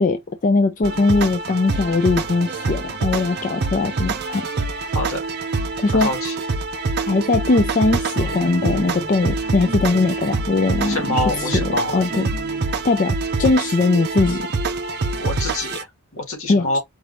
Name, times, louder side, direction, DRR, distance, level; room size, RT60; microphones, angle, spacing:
voice 1, 0.0-4.5 5.8-6.1 7.1-11.6 11.9-12.3 12.8-14.4 16.5-16.7, left 3 dB, 35° left, 0.4 m, -20 dB
sound 1, 0.8-15.8, right 3 dB, 45° right, 0.6 m, -25 dB
voice 2, 4.9-5.2 5.9-6.4 10.9-12.0 15.2-15.9 16.1-16.8, left 2 dB, 65° left, 2.0 m, -25 dB
sound 2, 8.2-12.8 13.6-13.7 13.9-14.0 14.3-14.4 14.6-15.2, left 1 dB, 5° right, 1.2 m, -36 dB
4.8 x 2.6 x 3.3 m
head